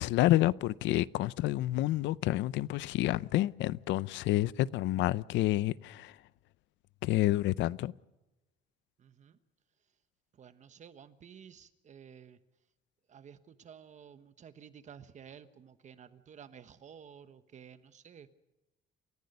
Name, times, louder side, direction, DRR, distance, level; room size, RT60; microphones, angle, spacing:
voice 1, 0.0-6.2 7.0-7.9, left 15 dB, 80° left, 0.6 m, -29 dB
voice 2, 9.0-9.4 10.3-12.4 13.1-18.4, right 8 dB, 40° right, 1.2 m, -53 dB
28.5 x 15.0 x 6.7 m
cardioid pair, 145°, 19 cm